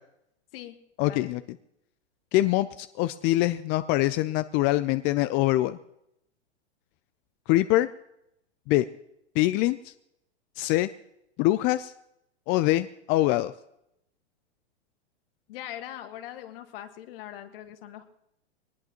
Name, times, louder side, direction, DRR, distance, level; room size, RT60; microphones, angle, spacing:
voice 1, 1.0-1.4 2.3-5.8 7.5-7.9 8.7-8.8 9.4-9.9 10.6-10.9 11.4-11.9 12.5-13.5, left 16 dB, 30° left, 13 dB, 0.5 m, -24 dB
voice 2, 15.5-18.1, left 12 dB, 55° left, 8 dB, 1.7 m, -41 dB
22.0 x 19.5 x 3.0 m, 0.81 s
hypercardioid pair, 115°, 33 cm